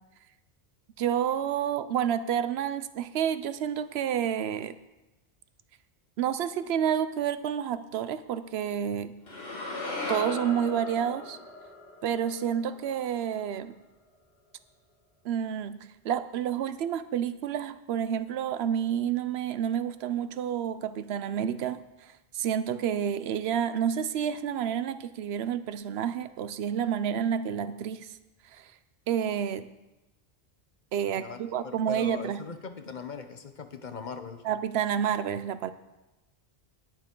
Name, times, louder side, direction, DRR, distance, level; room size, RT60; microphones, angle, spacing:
voice 1, 1.0-4.7 6.2-9.1 10.1-11.4 12.0-13.8 15.2-15.8 16.0-28.1 28.5-28.7 29.1-29.7 30.9-32.4 34.4-35.7, right 9 dB, 80° right, 13 dB, 0.8 m, -29 dB
sound 1, 9.3-13.5, left 2 dB, 70° left, 2.0 m, -38 dB
voice 2, 31.2-34.5, left 5 dB, 50° left, 8 dB, 0.9 m, -40 dB
18.5 x 6.7 x 3.7 m, 1.0 s
omnidirectional pair, 1.1 m